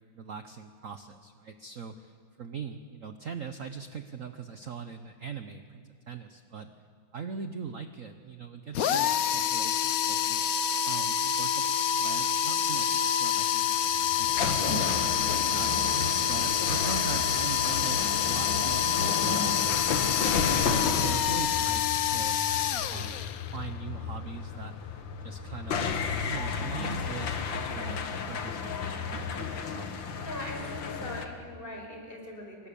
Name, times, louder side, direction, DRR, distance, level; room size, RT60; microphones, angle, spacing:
voice 1, 0.1-6.7 7.1-10.4 10.8-13.9 14.2-15.7 16.3-19.9 20.4-22.4 22.9-23.1 23.5-24.7 25.2-30.3, right 6 dB, 50° right, 8 dB, 1.2 m, -41 dB
sound 1, 8.7-23.6, left 9 dB, 60° left, 1.1 m, -27 dB
sound 2, 13.8-31.3, left 5 dB, 75° left, 2.2 m, -33 dB
voice 2, 29.9-32.7, left 1 dB, 25° left, 0 dB, 5.7 m, -41 dB
29.5 x 24.5 x 7.1 m, 2.1 s
omnidirectional pair, 2.1 m